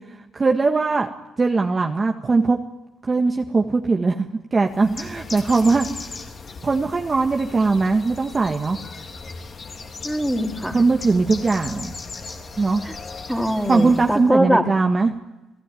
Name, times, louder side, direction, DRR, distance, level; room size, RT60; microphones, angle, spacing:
voice 1, 0.1-1.1 1.4-2.6 3.0-5.9 6.6-8.8 10.7-11.9 12.6-12.8 13.7-15.1, right 3 dB, 30° right, 3 dB, 1.6 m, -20 dB
Bird, 4.6-14.3, left 4 dB, 40° left, 3.3 m, -37 dB
voice 2, 10.0-10.8 12.8-12.9 13.3-14.6, equal, 5° right, 4 dB, 3.1 m, -22 dB
29.5 x 17.5 x 9.2 m, 1.0 s
cardioid pair, 95°, 0 cm